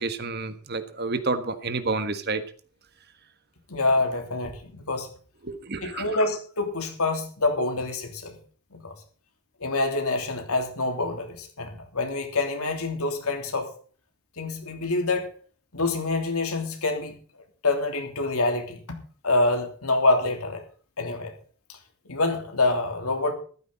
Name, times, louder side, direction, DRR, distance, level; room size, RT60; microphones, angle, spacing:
voice 1, 0.0-2.4 5.4-6.1, right 3 dB, 45° right, 10 dB, 1.4 m, -29 dB
voice 2, 3.7-5.1 5.8-8.4 8.7-8.9 9.6-13.7 14.4-15.3 15.7-17.1 17.6-18.8 19.2-20.6 21.0-21.3 22.1-23.3, left 2 dB, 80° left, 4 dB, 3.3 m, -26 dB
14.5 x 13.0 x 4.1 m, 0.42 s
head